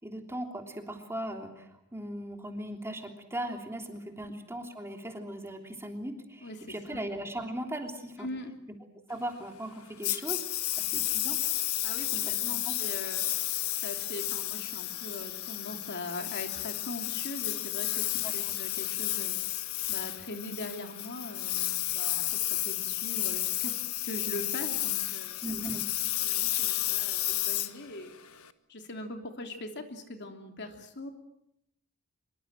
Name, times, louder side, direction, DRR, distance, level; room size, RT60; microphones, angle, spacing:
voice 1, 0.0-8.3 9.1-10.5 10.8-11.4 12.6-12.7 18.2-18.5 25.4-25.8, right 1 dB, 10° right, 3 dB, 3.3 m, -38 dB
voice 2, 6.4-7.0 8.2-8.5 11.8-19.4 19.9-23.8 24.0-25.4 26.0-28.2 28.7-31.1, left 2 dB, 55° left, 5 dB, 3.2 m, -41 dB
Engine, 10.0-28.5, left 15 dB, 80° left, 1.4 m, -32 dB
25.0 x 23.5 x 7.6 m, 0.80 s
head